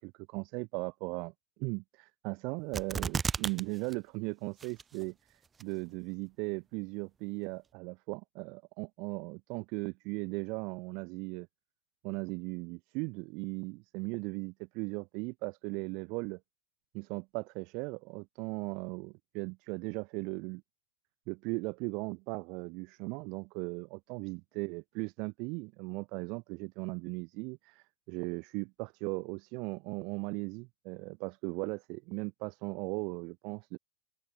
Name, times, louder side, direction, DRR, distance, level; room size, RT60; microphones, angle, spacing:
voice 1, 0.0-1.3 1.6-11.5 12.0-16.4 16.9-20.6 21.3-33.8, right 30 dB, 45° right, 0.9 m, -38 dB
sound 1, 2.7-3.6 3.9-4.0 4.6-5.1 5.6-5.7, right 5 dB, 15° right, 1.2 m, -32 dB
figure-of-eight pair, 90°, 0 cm